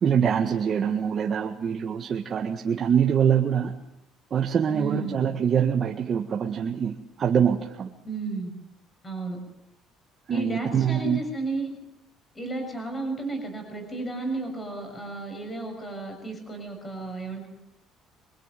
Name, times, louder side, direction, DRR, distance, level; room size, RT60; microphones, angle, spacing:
voice 1, 0.0-3.7 4.3-7.9 10.3-11.2, right 8 dB, 30° right, 2 dB, 1.8 m, -24 dB
voice 2, 4.7-5.2 8.0-8.5 9.0-9.4 10.3-11.7 12.3-17.5, right 3 dB, 15° left, 4 dB, 6.6 m, -33 dB
26.0 x 24.5 x 9.3 m, 0.84 s
cardioid pair, 170°, 0 cm